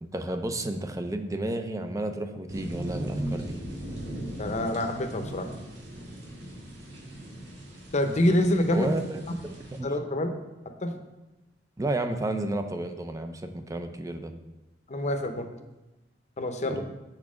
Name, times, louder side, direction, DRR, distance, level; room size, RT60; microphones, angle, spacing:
voice 1, 0.0-3.6 8.7-9.9 11.8-14.3 16.7-16.8, right 1 dB, 20° right, 7 dB, 0.6 m, -32 dB
sound 1, 2.5-9.8, right 1 dB, 75° right, 1.8 m, -38 dB
voice 2, 4.4-5.5 7.9-8.9 9.8-10.3 10.8-11.0 14.9-15.5 16.4-16.8, left 1 dB, 40° left, 6 dB, 0.8 m, -26 dB
7.4 x 4.7 x 6.1 m, 1.0 s
head